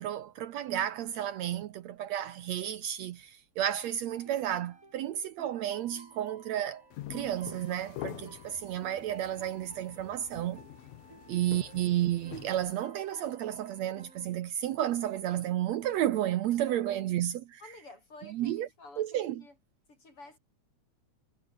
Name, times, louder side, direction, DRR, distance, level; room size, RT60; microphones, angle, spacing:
voice 1, 0.0-6.8 7.1-10.6 11.3-17.6 18.2-18.7 19.0-19.4, right 12 dB, 70° right, 2.0 m, -32 dB
sound 1, 4.0-14.3, right 2 dB, 25° right, 5.2 m, -56 dB
sound 2, 6.9-12.8, left 15 dB, 75° left, 2.2 m, -46 dB
voice 2, 16.7-17.1 17.6-19.5 19.9-20.4, left 3 dB, 45° left, 7.6 m, -52 dB
omnidirectional pair, 3.5 m